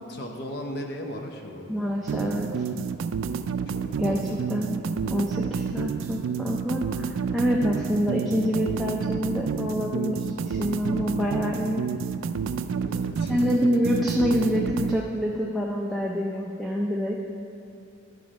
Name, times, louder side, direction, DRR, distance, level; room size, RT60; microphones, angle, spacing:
voice 1, 0.0-1.7 3.7-4.7 7.8-8.1 12.8-13.3, equal, 50° left, 2 dB, 0.8 m, -38 dB
voice 2, 1.7-2.6 4.0-4.8 5.1-11.9 13.3-17.2, equal, ahead, -3 dB, 0.4 m, -27 dB
sound 1, 2.1-15.0, right 6 dB, 75° right, 0.3 m, -29 dB
11.0 x 4.9 x 5.0 m, 2.6 s
head